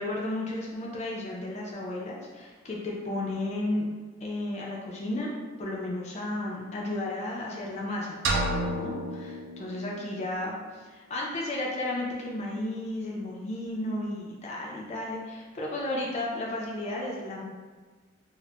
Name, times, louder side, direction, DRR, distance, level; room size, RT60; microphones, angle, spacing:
voice 1, 0.0-3.8 4.2-5.3 5.6-8.2 8.7-10.5 10.9-17.4, left 1 dB, 30° left, -3 dB, 0.3 m, -33 dB
sound 1, 8.2-10.2, right 1 dB, 55° right, 0.3 m, -30 dB
2.2 x 2.0 x 3.7 m, 1.4 s
head